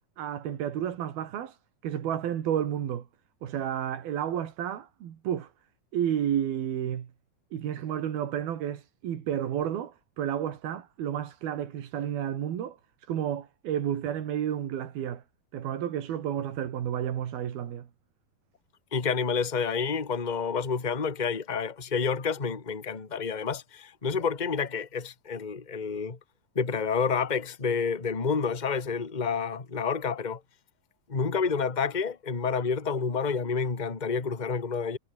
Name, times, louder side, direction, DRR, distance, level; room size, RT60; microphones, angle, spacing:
voice 1, 0.2-1.6 1.8-3.1 3.4-5.5 5.9-7.1 7.5-15.2 15.5-17.9, right 10 dB, 85° right, 4.1 m, -31 dB
voice 2, 18.9-26.2 26.5-30.4 31.1-35.0, left 5 dB, 20° left, 1.2 m, -29 dB
omnidirectional pair, 4.2 m